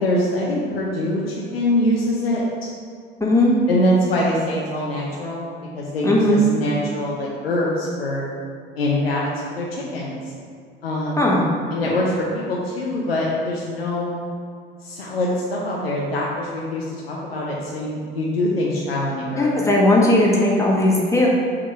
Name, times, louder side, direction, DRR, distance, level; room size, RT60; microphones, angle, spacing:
voice 1, 0.0-2.7 3.7-8.3 8.8-10.3 10.8-11.2 11.7-14.2 14.8-19.6, left 1 dB, 80° left, -4 dB, 0.8 m, -24 dB
voice 2, 3.2-3.6 6.0-6.4 11.2-11.4 19.4-21.3, left 1 dB, 10° left, -4 dB, 1.6 m, -17 dB
6.5 x 3.7 x 4.7 m, 2.2 s
figure-of-eight pair, 60°, 29 cm